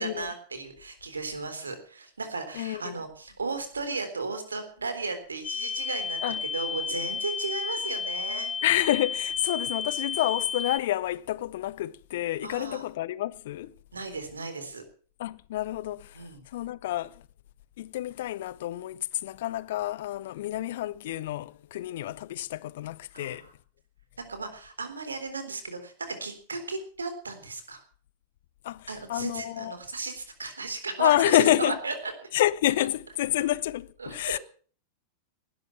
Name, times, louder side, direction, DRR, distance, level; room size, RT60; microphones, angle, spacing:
voice 1, 0.0-6.2 6.5-8.5 12.4-12.8 13.9-14.8 16.1-16.4 23.1-23.4 24.3-27.8 28.9-32.3 34.0-34.4, right 3 dB, 75° right, 3.7 m, -35 dB
voice 2, 2.5-3.0 6.2-6.4 8.6-13.7 15.2-17.2 17.8-23.5 28.6-29.8 31.0-31.8 32.3-34.4, left 14 dB, 55° left, 0.7 m, -28 dB
sound 1, 5.4-10.8, left 6 dB, 25° left, 0.8 m, -32 dB
19.0 x 12.0 x 5.9 m
figure-of-eight pair, 90°, 0 cm